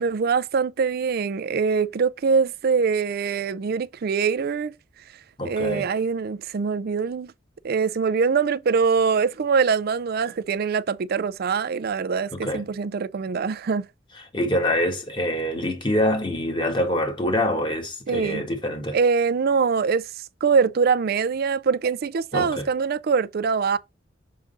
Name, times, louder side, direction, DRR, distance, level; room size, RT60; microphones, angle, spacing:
voice 1, 0.0-4.7 5.4-7.3 7.6-13.8 18.1-18.4 18.9-23.8, right 5 dB, 50° right, 0.4 m, -23 dB
voice 2, 5.4-5.9 12.3-12.6 14.3-19.0 22.3-22.6, left 1 dB, 25° left, 1.6 m, -25 dB
6.6 x 3.7 x 3.9 m
head